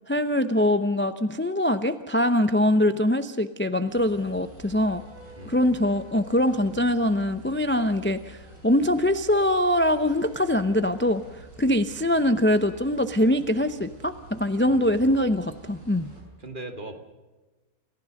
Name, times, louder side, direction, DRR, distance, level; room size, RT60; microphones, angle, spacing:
voice 1, 0.1-5.0 5.5-8.4 8.6-11.2 11.6-16.1, left 1 dB, 15° left, 10 dB, 0.4 m, -23 dB
sound 1, 3.9-16.2, right 1 dB, 85° right, 6.3 m, -48 dB
voice 2, 14.7-15.3 16.4-17.0, right 2 dB, 30° right, 5 dB, 2.4 m, -40 dB
28.5 x 15.5 x 6.5 m, 1.2 s
omnidirectional pair, 1.6 m